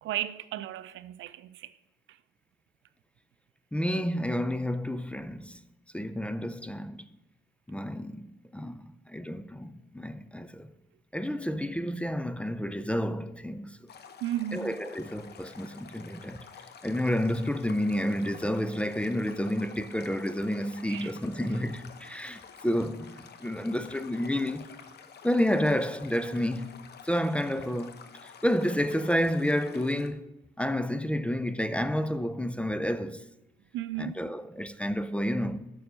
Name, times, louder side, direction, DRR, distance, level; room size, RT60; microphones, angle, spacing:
voice 1, 0.0-1.7 2.1-2.2 14.2-14.8 20.9-21.1 33.7-34.2, right 12 dB, 75° right, 0.5 m, -34 dB
voice 2, 3.7-5.6 5.9-7.1 7.7-10.7 11.1-13.9 14.5-16.5 16.8-24.7 25.2-26.8 27.0-30.3 30.6-33.2 34.0-35.7, equal, 5° left, 0.4 m, -30 dB
Stream, 13.9-30.1, left 6 dB, 55° left, 0.9 m, -50 dB
7.0 x 6.3 x 6.6 m
cardioid pair, 90°, 20 cm